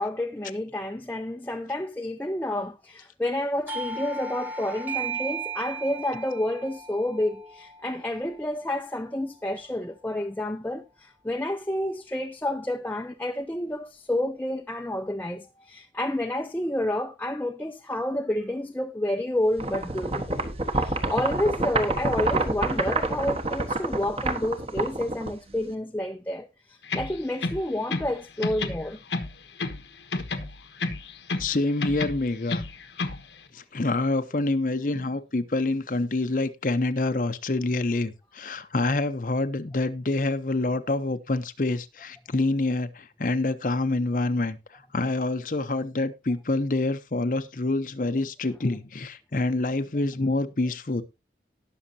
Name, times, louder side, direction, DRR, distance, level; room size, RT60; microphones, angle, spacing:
voice 1, 0.0-20.4 20.7-29.0, left 1 dB, 10° left, 0.5 m, -29 dB
Doorbell, 3.7-9.0, right 4 dB, 10° right, 1.1 m, -36 dB
sound 1, 19.6-25.7, right 2 dB, 35° right, 1.2 m, -28 dB
sound 2, 26.8-28.2 28.4-29.8 30.1-31.5 31.8-33.2, left 3 dB, 85° left, 1.3 m, -31 dB
voice 2, 31.4-32.6 33.5-51.0, left 2 dB, 45° left, 0.7 m, -27 dB
18.5 x 6.4 x 2.7 m
head